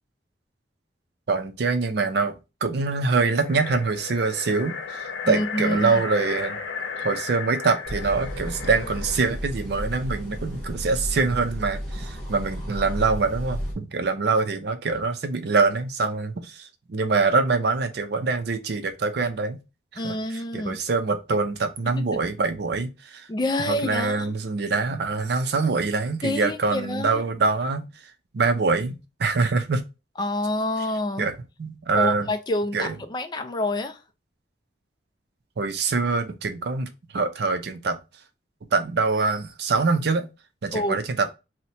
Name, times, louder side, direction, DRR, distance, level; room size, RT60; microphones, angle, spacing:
voice 1, 1.3-2.3 2.6-6.6 7.0-19.6 19.9-23.3 23.6-27.9 28.3-29.8 31.2-32.3 32.7-33.0 35.6-38.0 38.7-40.3 40.6-41.3, right 4 dB, 60° right, 0.5 m, -24 dB
sound 1, 3.0-9.4, left 5 dB, 80° left, 0.7 m, -35 dB
voice 2, 5.2-6.0 20.0-20.8 21.9-22.0 23.3-24.3 26.2-27.2 30.2-31.3 31.9-34.0 40.7-41.0, left 1 dB, 25° left, 0.3 m, -27 dB
sound 2, 7.9-13.7, equal, 5° left, 1.1 m, -33 dB
2.8 x 2.1 x 4.1 m
head